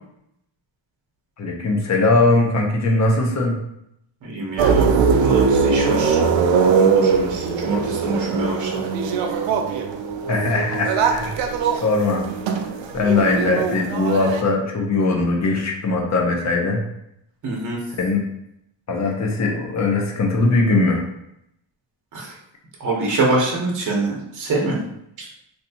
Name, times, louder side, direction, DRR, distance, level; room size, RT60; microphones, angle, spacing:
voice 1, 1.4-3.6 10.3-11.4 11.7-12.2 12.9-16.8 17.9-18.2 18.9-21.0, left 3 dB, 35° left, 1 dB, 0.6 m, -20 dB
voice 2, 4.2-4.9 5.2-6.2 6.6-8.8 17.4-17.8 22.1-22.3 22.8-24.8 25.2-25.3, right 2 dB, 40° right, -2 dB, 0.9 m, -24 dB
sound 1, 4.6-14.4, right 5 dB, 75° right, 0.6 m, -21 dB
3.2 x 2.8 x 2.8 m, 0.77 s
cardioid pair, 140°, 46 cm